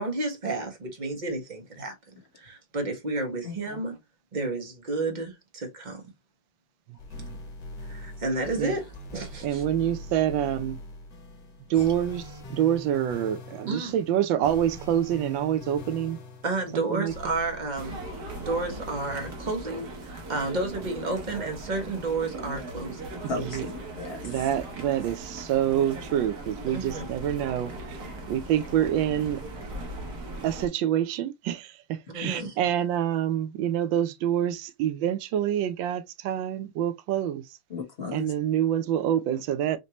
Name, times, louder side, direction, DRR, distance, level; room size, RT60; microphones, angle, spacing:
voice 1, 0.0-1.9 2.4-4.0 4.3-6.0 7.8-9.6 13.7-13.9 16.4-18.0 18.4-23.0 26.7-27.0 32.1-32.6, right 3 dB, 30° right, 1.0 m, -31 dB
voice 2, 3.4-3.8 23.3-24.2 32.2-32.5 37.7-38.3, left 2 dB, 35° left, 1.1 m, -35 dB
sound 1, 7.0-19.4, left 1 dB, 55° left, 1.8 m, -42 dB
voice 3, 9.4-10.8 11.7-16.2 16.7-17.1 23.4-23.7 24.2-28.0 28.3-29.4 30.4-37.4 38.1-39.8, right 11 dB, 75° right, 1.2 m, -27 dB
sound 2, 17.8-30.7, right 2 dB, 55° right, 1.3 m, -39 dB
5.2 x 2.7 x 2.9 m
omnidirectional pair, 2.4 m